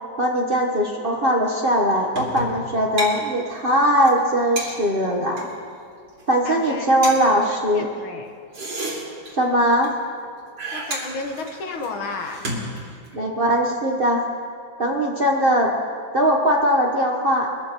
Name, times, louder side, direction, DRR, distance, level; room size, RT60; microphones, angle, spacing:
voice 1, 0.2-5.5 6.3-7.9 9.3-10.0 13.1-14.3 14.8-15.7 16.1-17.6, equal, 35° right, 0 dB, 0.9 m, -20 dB
sound 1, 2.1-2.7 3.0-3.1 3.4-3.5 3.8-3.9 4.0-4.2 4.6-5.5 6.1-6.3 6.6-6.7 7.0-7.2 8.3-9.6 9.8-10.3 10.6-13.2, right 1 dB, 70° right, 3.6 m, -31 dB
voice 2, 6.5-7.0 7.5-8.3 10.7-12.5, left 3 dB, 80° left, 3 dB, 2.2 m, -32 dB
23.0 x 14.0 x 3.0 m, 2.2 s
omnidirectional pair, 2.2 m